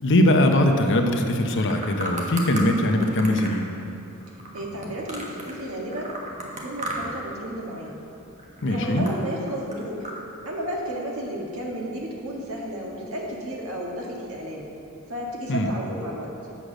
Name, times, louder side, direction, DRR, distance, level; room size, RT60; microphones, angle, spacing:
voice 1, 0.0-3.7 8.6-9.1 15.5-15.7, left 1 dB, 55° left, 4 dB, 0.8 m, -21 dB
sound 1, 1.4-2.7 3.0-5.6 5.9-7.3 7.5-8.0 8.4-10.2, right 1 dB, 35° right, 1.3 m, -35 dB
voice 2, 4.5-6.1 6.4-8.0 8.6-10.1 10.4-14.7 15.1-16.3, right 1 dB, 65° right, -2 dB, 1.6 m, -32 dB
8.3 x 6.6 x 6.2 m, 2.9 s
head